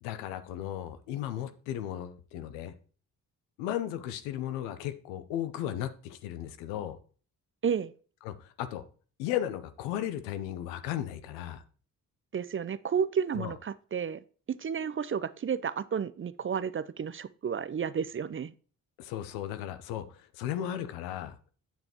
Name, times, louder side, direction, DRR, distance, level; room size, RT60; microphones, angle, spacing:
voice 1, 0.0-2.7 3.6-7.0 8.2-8.8 9.2-11.6 13.3-13.5 19.0-21.3, left 11 dB, 85° left, 0.7 m, -35 dB
voice 2, 12.3-14.2 14.5-18.5, right 7 dB, 30° right, 0.5 m, -32 dB
7.9 x 6.9 x 2.9 m
hypercardioid pair, 40°, 42 cm